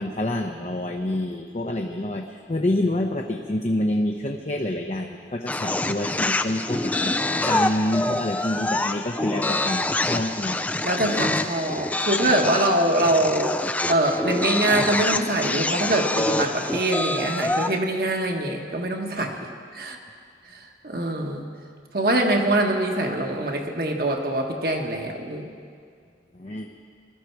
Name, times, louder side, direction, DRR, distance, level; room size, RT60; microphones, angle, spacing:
voice 1, 0.0-7.1 7.4-10.6 26.3-26.7, left 1 dB, 40° left, 2 dB, 0.7 m, -27 dB
sound 1, 5.5-17.8, left 2 dB, 10° left, 0.3 m, -26 dB
voice 2, 10.8-19.4 19.7-20.0 20.5-21.5 21.9-25.5, right 1 dB, 55° right, 2 dB, 1.4 m, -24 dB
20.5 x 13.0 x 4.7 m, 2.2 s
head